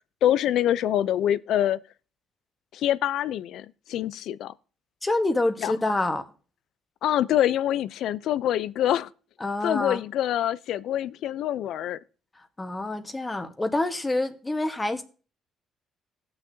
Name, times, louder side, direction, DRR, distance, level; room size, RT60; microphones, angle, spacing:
voice 1, 0.2-1.8 2.7-4.5 5.6-5.7 7.0-9.1 9.6-12.0, left 11 dB, 75° left, 0.4 m, -25 dB
voice 2, 5.0-6.3 9.4-10.0 12.6-15.0, left 2 dB, 20° left, 1.2 m, -27 dB
17.0 x 6.4 x 2.7 m
cardioid pair, 90°, 0 cm